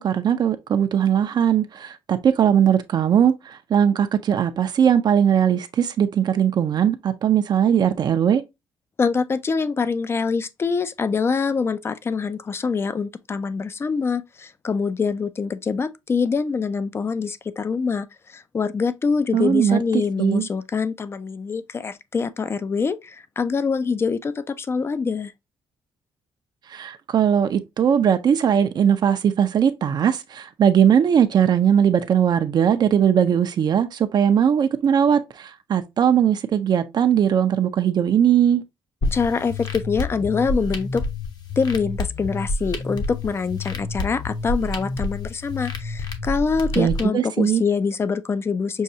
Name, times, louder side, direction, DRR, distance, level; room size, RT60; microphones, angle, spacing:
voice 1, 0.0-8.4 19.3-20.5 26.7-38.6 46.8-47.6, right 8 dB, 50° right, 0.5 m, -19 dB
voice 2, 9.0-25.3 39.1-41.0 41.6-48.8, left 5 dB, 25° left, 0.4 m, -25 dB
sound 1, 39.0-47.0, left 2 dB, 45° left, 0.9 m, -29 dB
6.2 x 2.3 x 2.7 m
cardioid pair, 110°, 9 cm